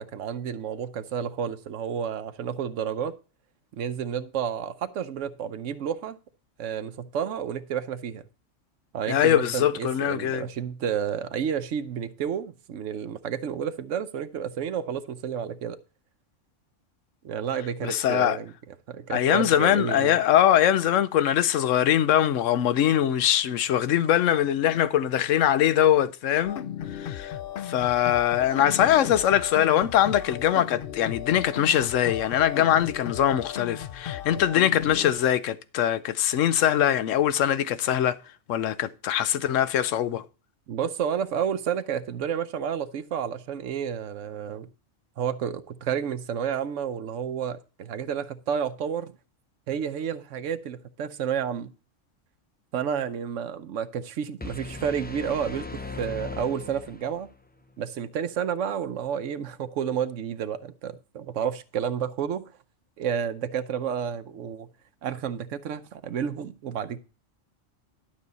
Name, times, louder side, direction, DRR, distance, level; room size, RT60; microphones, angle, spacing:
voice 1, 0.0-3.1 3.7-6.2 6.6-8.2 8.9-15.8 17.2-18.5 18.9-20.2 40.7-44.7 45.2-49.1 49.7-51.7 52.7-57.3 57.8-62.4 63.0-64.7 65.0-67.0, right 8 dB, 85° right, 1.1 m, -30 dB
voice 2, 9.1-10.5 17.8-18.4 19.1-26.6 26.9-27.3 27.6-38.2 38.5-40.2, left 11 dB, 85° left, 1.0 m, -22 dB
sound 1, 26.4-35.1, left 10 dB, 60° left, 0.7 m, -36 dB
sound 2, 54.4-57.4, left 3 dB, 10° left, 0.5 m, -38 dB
12.0 x 6.3 x 4.1 m
omnidirectional pair, 1.3 m